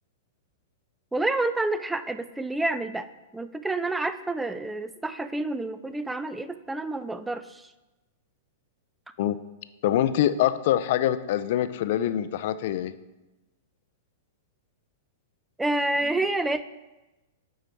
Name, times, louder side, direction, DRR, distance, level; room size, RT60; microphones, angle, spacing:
voice 1, 1.1-3.1 3.3-7.7 15.6-16.6, right 2 dB, 5° right, 12 dB, 0.4 m, -28 dB
voice 2, 9.8-12.9, left 11 dB, 60° left, 14 dB, 0.4 m, -24 dB
7.9 x 4.8 x 4.5 m, 1.1 s
hypercardioid pair, 120°, 0 cm